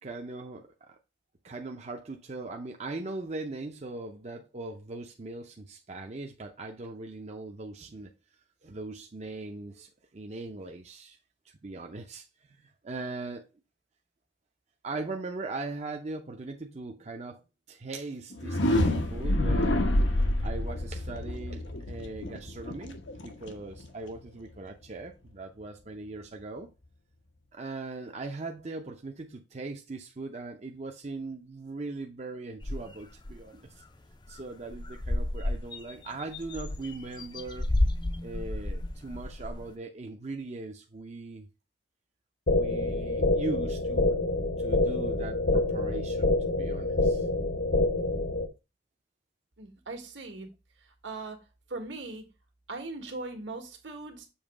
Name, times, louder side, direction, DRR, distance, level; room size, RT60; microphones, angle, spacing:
voice 1, 0.0-1.0 1.4-8.1 8.6-11.2 11.4-13.4 14.8-17.4 17.7-19.8 20.4-26.7 27.5-33.6 34.3-37.7 38.2-41.5 42.5-44.2 44.6-47.3, right 3 dB, 35° right, 0.6 m, -40 dB
sound 1, 18.3-24.2, left 1 dB, 85° left, 1.0 m, -28 dB
sound 2, 32.6-33.4 33.8-33.9 34.1-34.4 34.7-39.7, left 1 dB, 25° left, 0.5 m, -32 dB
sound 3, 42.5-48.5, left 2 dB, 70° left, 1.1 m, -27 dB
voice 2, 49.6-50.5 51.0-51.4 51.7-52.3 52.7-54.3, right 3 dB, 75° right, 1.6 m, -39 dB
7.1 x 3.1 x 5.0 m
head